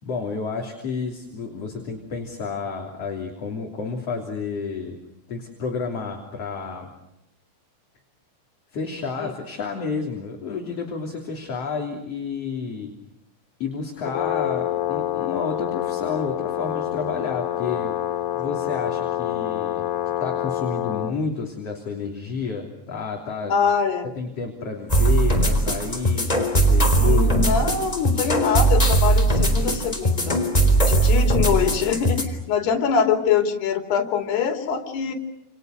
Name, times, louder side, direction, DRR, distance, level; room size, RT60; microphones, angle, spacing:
voice 1, 0.0-5.0 5.3-6.9 8.7-13.0 13.6-19.9 20.2-23.6 24.2-27.6, left 5 dB, 35° left, 1 dB, 3.8 m, -30 dB
Brass instrument, 14.0-21.1, left 13 dB, 80° left, 4.6 m, -27 dB
voice 2, 23.5-24.1 26.9-30.4 30.8-35.1, left 6 dB, 65° left, 4 dB, 4.9 m, -24 dB
sound 1, 24.9-32.2, right 2 dB, 10° left, 3.1 m, -19 dB
29.5 x 29.0 x 6.6 m, 0.85 s
omnidirectional pair, 5.2 m